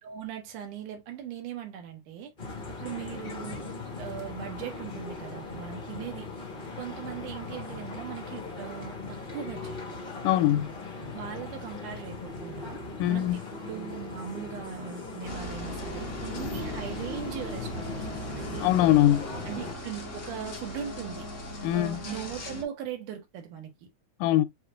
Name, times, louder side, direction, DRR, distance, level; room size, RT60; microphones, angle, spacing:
voice 1, 0.0-2.3 2.8-3.6 4.0-6.3 6.8-10.0 11.1-12.8 13.1-18.7 19.5-21.3 21.7-23.7, right 9 dB, 80° right, 2.9 m, -39 dB
sound 1, 2.4-19.7, left 3 dB, 75° left, 0.4 m, -39 dB
voice 2, 10.2-10.7 13.0-13.4 18.6-19.3 21.6-22.0 24.2-24.5, left 13 dB, 90° left, 2.1 m, -22 dB
sound 2, 15.2-22.6, left 1 dB, 50° left, 0.9 m, -39 dB
7.2 x 2.9 x 2.5 m
omnidirectional pair, 3.5 m